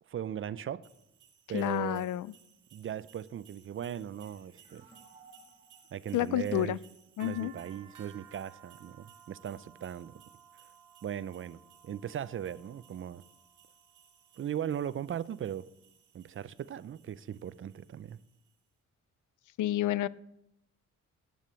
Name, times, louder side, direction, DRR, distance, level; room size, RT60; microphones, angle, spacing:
voice 1, 0.1-0.8 1.5-2.0 2.7-4.8 5.9-6.8 7.2-10.2 11.0-13.2 14.4-15.6 16.1-18.2, right 9 dB, 45° right, 0.4 m, -38 dB
sound 1, 0.8-18.5, right 9 dB, 80° right, 1.5 m, -59 dB
voice 2, 1.5-2.3 6.1-6.8 7.2-7.5 19.6-20.1, left 14 dB, 80° left, 0.5 m, -29 dB
sound 2, 4.2-7.6, right 3 dB, 15° right, 2.7 m, -61 dB
10.5 x 8.5 x 7.4 m
cardioid pair, 120°, 30 cm